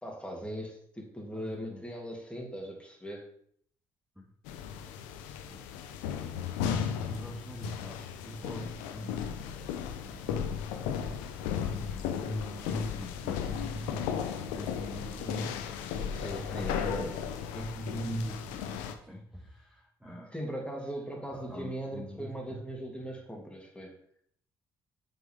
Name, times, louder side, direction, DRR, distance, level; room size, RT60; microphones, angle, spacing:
voice 1, 0.0-3.3 16.1-17.2 20.3-24.0, right 1 dB, 10° left, -1 dB, 2.8 m, -39 dB
voice 2, 1.3-1.8 4.2-4.3 5.5-5.7 6.2-17.3 17.5-20.3 21.3-22.6, equal, 5° right, -4 dB, 1.9 m, -42 dB
sound 1, 4.5-18.9, left 8 dB, 80° left, 0.6 m, -35 dB
7.6 x 5.6 x 3.6 m, 0.63 s
hypercardioid pair, 45°, 12 cm